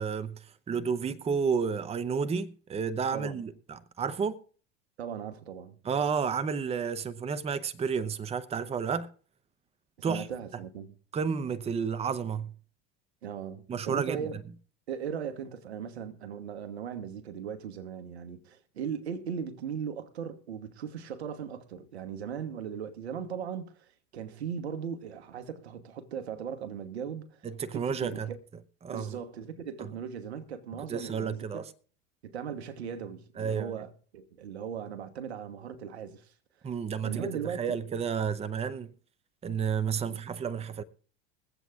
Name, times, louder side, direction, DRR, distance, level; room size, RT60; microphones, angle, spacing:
voice 1, 0.0-4.4 5.8-9.1 10.0-10.3 11.1-12.5 13.7-14.3 27.4-28.3 28.8-29.2 29.8-29.9 30.9-31.6 33.4-33.7 36.6-38.9 39.4-40.8, right 6 dB, 20° right, 0.7 m, -31 dB
voice 2, 3.1-3.4 5.0-5.8 10.0-10.9 13.2-14.3 14.9-27.4 27.7-28.4 28.9-31.6 32.2-36.3 37.0-37.8 40.0-40.2, right 7 dB, 85° right, 1.3 m, -38 dB
22.0 x 8.0 x 3.5 m
hypercardioid pair, 85°, 31 cm